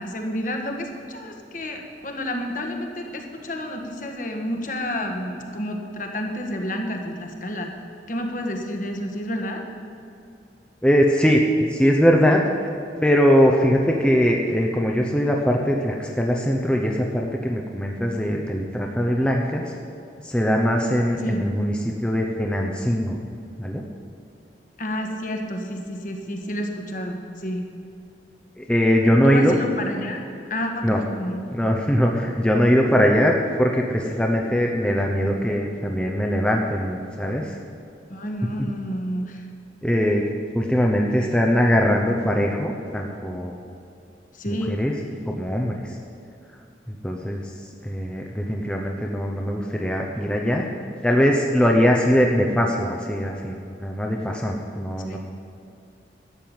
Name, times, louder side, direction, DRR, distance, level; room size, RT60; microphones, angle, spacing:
voice 1, 0.0-7.7 8.1-9.6 21.2-21.5 24.8-27.6 29.2-30.2 30.5-31.4 38.1-39.5 44.3-44.8 55.0-55.2, left 1 dB, 45° left, 3 dB, 1.6 m, -30 dB
voice 2, 10.8-11.4 11.7-12.7 13.0-19.8 20.2-23.2 23.6-23.8 28.6-29.5 30.8-31.0 31.5-37.6 38.6-38.7 39.8-40.2 40.5-43.5 44.5-44.9 45.3-46.0 46.9-47.4 47.8-50.7 51.0-55.2, equal, 5° left, 0 dB, 0.8 m, -21 dB
12.5 x 7.6 x 8.9 m, 2.4 s
head